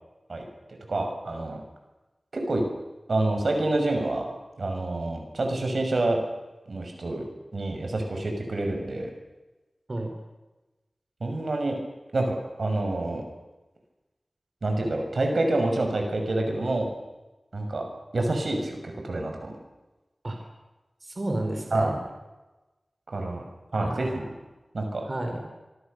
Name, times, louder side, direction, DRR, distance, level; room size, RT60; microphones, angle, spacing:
voice 1, 0.9-1.6 2.3-2.6 3.1-4.3 4.6-6.2 6.7-7.2 7.5-9.1 11.2-11.7 12.1-13.2 14.6-16.9 17.5-17.8 18.1-18.8 19.0-19.6 21.7-22.0 23.1-23.4 23.7-24.2 24.7-25.0, right 2 dB, 75° right, 3 dB, 6.6 m, -27 dB
voice 2, 21.0-22.0 23.8-24.2 25.1-25.4, right 1 dB, 45° right, 3 dB, 5.0 m, -31 dB
25.5 x 25.0 x 6.9 m, 1.1 s
wide cardioid pair, 65°, 0 cm